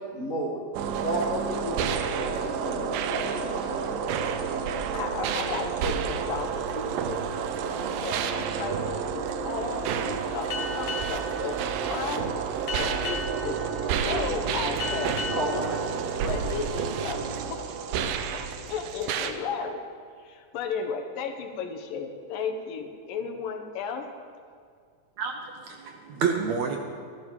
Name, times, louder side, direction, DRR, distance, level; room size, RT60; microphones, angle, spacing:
voice 1, 0.1-0.6 1.0-3.8 15.3-15.8 16.2-16.3, equal, 50° left, -6 dB, 0.9 m, -32 dB
sound 1, 0.7-19.3, right 7 dB, 90° right, 2.5 m, -30 dB
voice 2, 4.9-11.6 11.9-12.4 12.8-13.6 14.0-15.1 15.5-15.7 16.2-19.9 20.3-24.1, left 6 dB, 80° left, 5 dB, 2.7 m, -35 dB
Boat Water vehicle, 10.5-17.6, left 5 dB, 65° left, 1.7 m, -38 dB
voice 3, 25.2-26.8, right 6 dB, 70° right, 3 dB, 1.8 m, -29 dB
13.5 x 13.0 x 4.8 m, 2.2 s
omnidirectional pair, 3.9 m